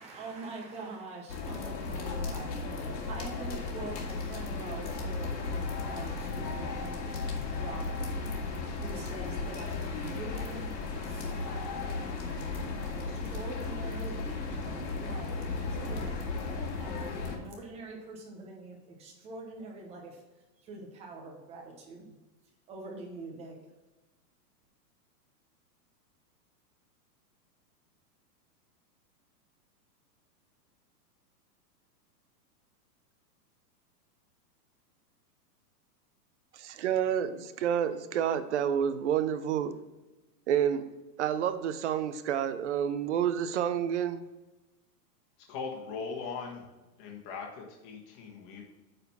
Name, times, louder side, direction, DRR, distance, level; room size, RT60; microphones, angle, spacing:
voice 1, 0.0-7.0 7.5-8.1 8.8-10.7 11.0-11.4 12.8-14.3 14.8-16.1 16.8-20.2 20.6-22.1 22.7-23.5, right 3 dB, 15° right, 0.9 m, -44 dB
sound 1, 1.3-17.4, left 3 dB, 90° left, 2.4 m, -35 dB
voice 2, 36.5-39.7 40.5-40.9 41.2-44.2, right 9 dB, 45° right, 0.6 m, -29 dB
voice 3, 45.5-46.7 47.0-48.6, left 5 dB, 25° left, 1.5 m, -39 dB
9.0 x 4.1 x 5.5 m
supercardioid pair, 165°, 49 cm